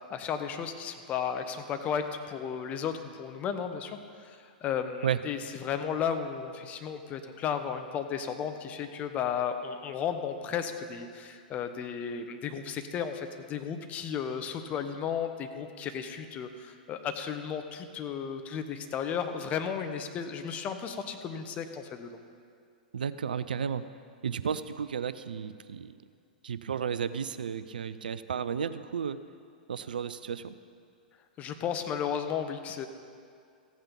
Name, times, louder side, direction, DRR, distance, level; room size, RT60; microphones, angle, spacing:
voice 1, 0.0-22.1 31.4-32.9, left 7 dB, 30° left, 7 dB, 1.0 m, -34 dB
voice 2, 22.9-23.8 24.2-26.0 26.4-29.2 29.7-30.6, right 7 dB, 70° right, 13 dB, 0.5 m, -33 dB
15.0 x 8.8 x 5.4 m, 2.3 s
figure-of-eight pair, 105°, 5 cm